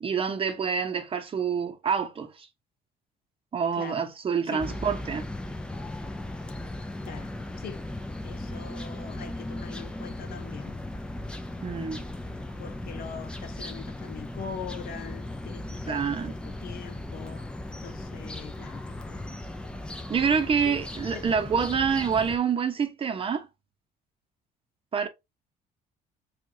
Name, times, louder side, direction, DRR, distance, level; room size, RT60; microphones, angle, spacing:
voice 1, 0.0-2.5 3.5-5.2 11.6-12.0 15.9-16.4 20.1-23.5 24.9-25.1, right 6 dB, 35° right, 0.8 m, -27 dB
sound 1, 4.6-22.4, left 1 dB, 5° left, 0.5 m, -37 dB
voice 2, 7.1-7.8 8.2-10.8 12.6-17.5 17.8-19.3 20.6-20.8 21.1-21.3, left 7 dB, 60° left, 0.7 m, -42 dB
4.5 x 2.4 x 2.7 m
cardioid pair, 110°, 17 cm